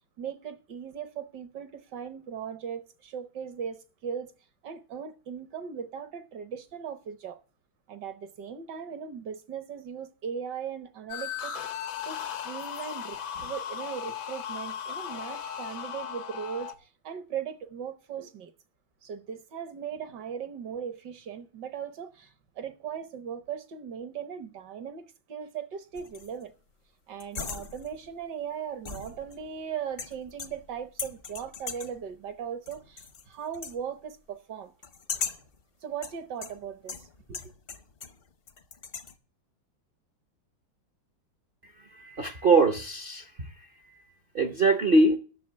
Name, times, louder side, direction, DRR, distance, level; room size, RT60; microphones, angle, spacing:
voice 1, 0.2-4.3 4.6-7.4 7.9-11.5 12.0-18.5 19.0-26.5 27.1-34.7 35.8-37.4, right 7 dB, 65° right, 1.5 m, -38 dB
sound 1, 11.1-16.7, left 8 dB, 85° left, 2.0 m, -37 dB
sound 2, 26.0-26.4 27.2-28.1 28.9-29.6 30.0-30.7 31.0-32.0 32.7-33.2 33.5-33.8 34.8-35.5 36.0-38.2 38.5-39.1, left 5 dB, 45° left, 0.7 m, -39 dB
voice 2, 41.9-43.5 44.3-45.2, right 3 dB, 45° right, 0.7 m, -22 dB
10.5 x 6.6 x 7.7 m
omnidirectional pair, 2.1 m